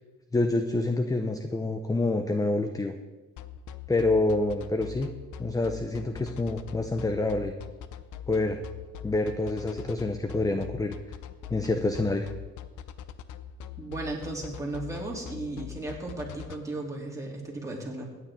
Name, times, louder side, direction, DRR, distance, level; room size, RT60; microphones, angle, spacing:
voice 1, 0.3-2.9 3.9-5.1 5.4-7.5 8.3-8.6 9.0-11.0 11.5-12.3, left 2 dB, 10° left, 7 dB, 0.7 m, -27 dB
sound 1, 3.4-16.6, left 10 dB, 80° left, 0.7 m, -41 dB
voice 2, 13.8-18.1, right 2 dB, 10° right, -2 dB, 3.2 m, -35 dB
16.5 x 9.4 x 3.7 m, 1.2 s
cardioid pair, 90°, 30 cm